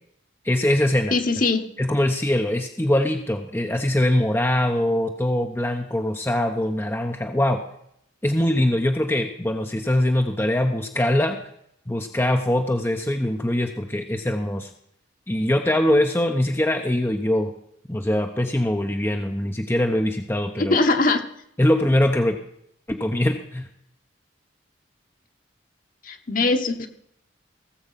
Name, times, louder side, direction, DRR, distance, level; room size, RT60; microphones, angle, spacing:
voice 1, 0.4-1.1 1.8-7.6 8.2-11.4 11.9-14.7 15.3-17.5 17.9-20.8 21.6-22.4 22.9-23.7, left 1 dB, 10° left, 4 dB, 0.8 m, -22 dB
voice 2, 1.1-1.6 20.6-21.2 26.0-26.9, left 3 dB, 45° left, 6 dB, 1.4 m, -21 dB
17.0 x 7.8 x 5.8 m, 0.72 s
head